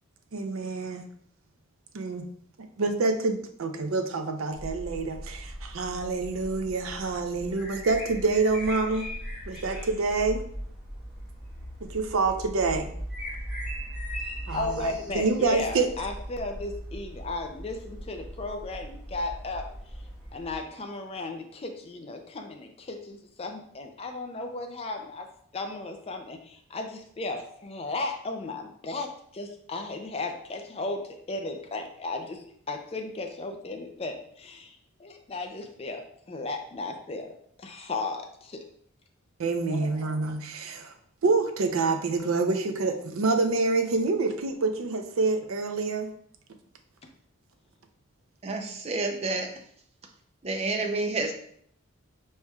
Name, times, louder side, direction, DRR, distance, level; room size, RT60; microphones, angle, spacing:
voice 1, 0.3-1.1 1.9-2.3 2.8-9.1 9.5-10.4 11.8-12.9 14.5-15.9 39.4-40.9 41.2-46.1, right 3 dB, 80° right, 5 dB, 0.5 m, -27 dB
sound 1, 4.5-20.5, equal, 5° right, 1.2 m, -39 dB
voice 2, 14.5-19.7 20.3-25.3 25.5-37.3 37.6-38.6 39.7-40.0, left 2 dB, 30° left, 4 dB, 0.4 m, -35 dB
voice 3, 48.4-49.5 50.4-51.3, right 3 dB, 30° right, 4 dB, 0.5 m, -29 dB
4.6 x 4.3 x 2.3 m, 0.65 s
head